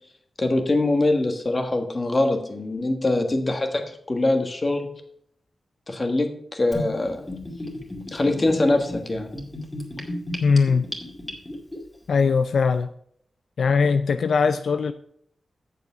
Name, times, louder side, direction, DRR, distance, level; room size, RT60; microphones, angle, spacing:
voice 1, 0.4-4.9 5.9-7.3 8.1-9.4, left 2 dB, 35° left, 5 dB, 1.5 m, -23 dB
Gurgling / Bathtub (filling or washing), 6.7-11.8, left 1 dB, 15° left, 2.2 m, -34 dB
voice 2, 10.4-10.8 12.1-12.9 13.6-14.9, left 5 dB, 75° left, 10 dB, 0.4 m, -20 dB
8.5 x 6.8 x 5.5 m, 0.68 s
wide cardioid pair, 95°, 0 cm